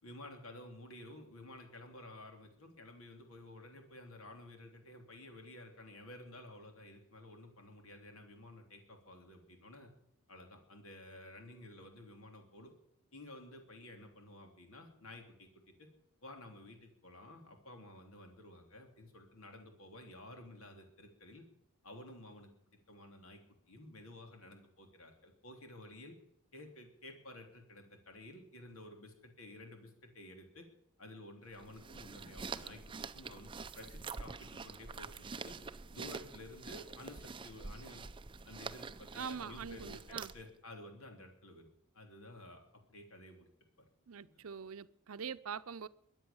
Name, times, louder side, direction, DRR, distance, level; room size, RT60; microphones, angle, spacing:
voice 1, 0.0-9.9 10.3-12.7 13.1-15.9 16.2-21.4 21.8-23.4 23.7-26.1 26.5-30.7 31.0-35.6 35.9-38.0 38.5-42.6 42.9-43.5 44.2-44.4, left 1 dB, 70° left, 3.3 m, -53 dB
sound 1, 31.5-40.6, right 4 dB, 20° right, 0.5 m, -46 dB
voice 2, 39.1-40.3 44.1-45.9, right 6 dB, 75° right, 0.6 m, -43 dB
22.5 x 8.9 x 7.1 m
head